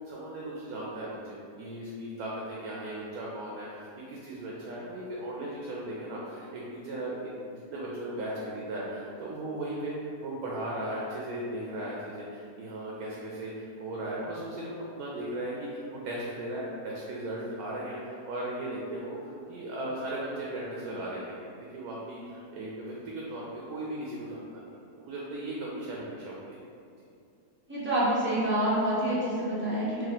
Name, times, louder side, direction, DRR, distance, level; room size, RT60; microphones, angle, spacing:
voice 1, 0.0-21.5 21.7-26.6, right 1 dB, 75° right, -4 dB, 1.0 m, -37 dB
voice 2, 27.7-30.1, right 1 dB, 15° right, -10 dB, 0.5 m, -27 dB
2.9 x 2.7 x 3.9 m, 2.5 s
omnidirectional pair, 1.7 m